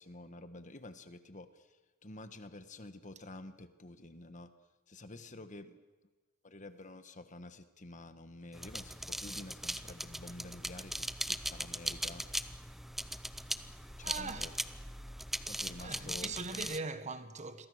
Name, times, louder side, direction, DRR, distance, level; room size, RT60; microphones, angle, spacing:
voice 1, 0.0-1.7 2.0-4.5 4.9-5.8 6.4-12.3 14.0-14.5 15.5-16.3, left 2 dB, 35° left, 1.4 m, -49 dB
sound 1, 8.5-16.8, equal, ahead, 0.7 m, -40 dB
voice 2, 13.4-14.5 15.8-17.7, right 3 dB, 35° right, 1.5 m, -42 dB
28.5 x 23.0 x 6.5 m
head